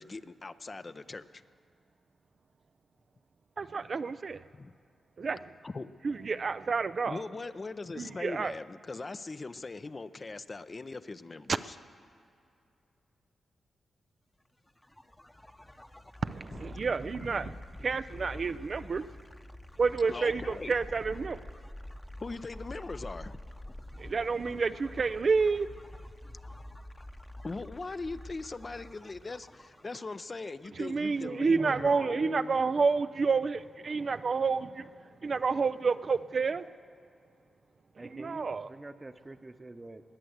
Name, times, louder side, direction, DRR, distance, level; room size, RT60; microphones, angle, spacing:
voice 1, 0.0-1.4 4.5-4.7 5.6-5.9 7.1-11.7 16.5-16.6 17.3-17.5 20.1-20.7 22.2-23.4 27.4-32.5, left 3 dB, 40° left, 0.5 m, -40 dB
voice 2, 3.6-4.4 5.2-5.5 6.0-7.2 8.0-8.5 16.2-19.1 19.8-21.4 24.0-25.7 30.8-34.9 35.2-36.7 38.2-38.7, right 4 dB, 55° right, 0.4 m, -29 dB
sound 1, 14.7-30.4, left 1 dB, 15° left, 0.9 m, -47 dB
voice 3, 38.0-40.2, right 2 dB, 30° right, 0.9 m, -47 dB
20.5 x 7.8 x 7.9 m
supercardioid pair, 45°, 0 cm